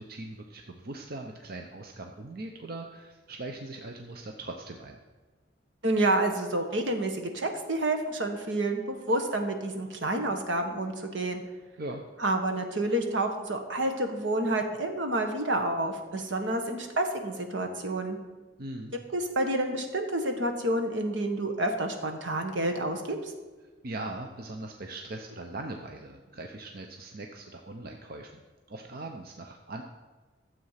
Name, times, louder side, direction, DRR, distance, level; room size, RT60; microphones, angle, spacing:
voice 1, 0.0-5.0 11.8-12.0 18.6-18.9 23.8-28.4 28.7-29.8, right 2 dB, 55° right, 3 dB, 0.8 m, -40 dB
voice 2, 5.8-11.4 12.2-18.2 19.1-23.3, right 1 dB, 75° right, 5 dB, 1.5 m, -29 dB
13.0 x 7.7 x 5.8 m, 1.3 s
head